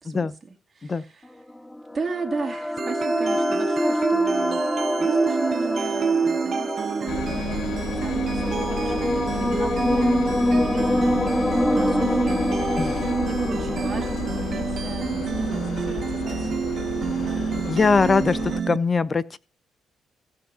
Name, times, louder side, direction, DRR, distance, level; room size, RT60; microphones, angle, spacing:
voice 1, 0.0-1.4 1.9-4.6 5.0-11.3 11.7-12.5 13.3-16.7, right 4 dB, 30° right, 2.2 m, -35 dB
sound 1, 1.5-15.6, left 1 dB, 10° left, 0.5 m, -26 dB
sound 2, 2.8-18.8, right 7 dB, 50° right, 0.5 m, -28 dB
Engine, 7.1-18.6, left 9 dB, 70° left, 1.2 m, -32 dB
voice 2, 17.7-19.4, left 4 dB, 35° left, 0.8 m, -22 dB
15.5 x 5.6 x 5.6 m
cardioid pair, 90°, 0 cm